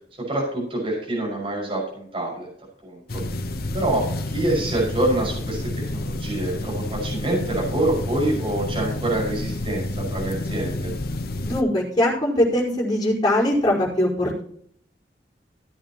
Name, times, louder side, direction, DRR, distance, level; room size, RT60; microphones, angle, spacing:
voice 1, 0.3-2.5 2.8-3.2 3.7-10.9, right 1 dB, 30° right, -4 dB, 5.9 m, -26 dB
sound 1, 3.1-11.6, left 1 dB, 60° left, 1.0 m, -29 dB
voice 2, 11.5-14.4, left 1 dB, 25° left, -4 dB, 5.3 m, -21 dB
17.0 x 9.0 x 3.1 m, 0.63 s
head